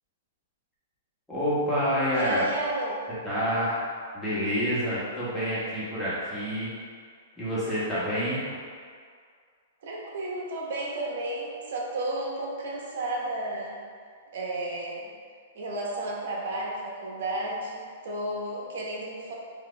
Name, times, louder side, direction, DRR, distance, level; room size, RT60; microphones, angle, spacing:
voice 1, 1.3-2.4 3.2-3.8 4.1-6.7 7.4-8.6, equal, 5° left, -11 dB, 1.4 m, -28 dB
voice 2, 2.1-3.0 9.8-13.8 14.3-15.1 15.5-19.3, right 1 dB, 65° right, -3 dB, 1.1 m, -32 dB
4.9 x 2.7 x 3.4 m, 2.1 s
hypercardioid pair, 150°, 0 cm